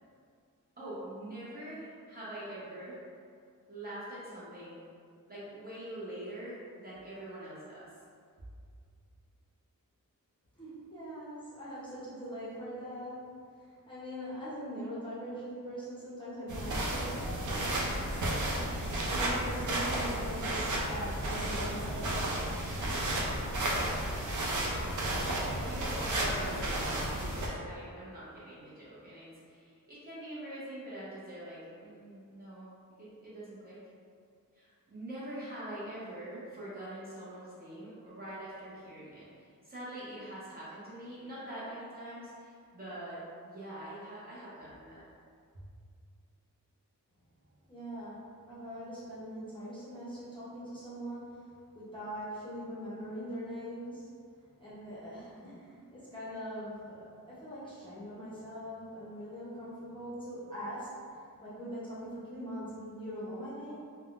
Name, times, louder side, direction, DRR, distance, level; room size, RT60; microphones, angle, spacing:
voice 1, 0.8-3.0 3.7-4.8 5.3-7.9 25.2-33.8 34.5-43.2 43.4-45.0, right 1 dB, 25° right, -10 dB, 0.7 m, -44 dB
voice 2, 10.6-13.3 13.6-18.3 19.0-22.2 47.7-51.5 51.7-54.1 54.6-60.9 61.4-63.7, equal, 15° left, -11 dB, 0.7 m, -42 dB
sound 1, 16.5-27.5, right 1 dB, 60° right, 0.5 m, -32 dB
3.4 x 2.1 x 2.4 m, 2.3 s
wide cardioid pair, 165°, 34 cm